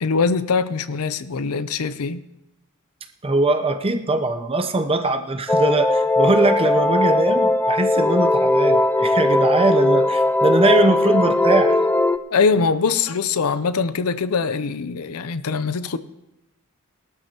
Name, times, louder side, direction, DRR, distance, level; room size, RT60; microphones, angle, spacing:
voice 1, 0.0-2.2 12.3-16.0, left 5 dB, 80° left, 0.6 m, -22 dB
voice 2, 3.2-11.8, right 2 dB, 25° right, 0.7 m, -21 dB
sound 1, 5.5-12.2, left 2 dB, 10° left, 0.3 m, -18 dB
19.0 x 12.5 x 2.9 m
head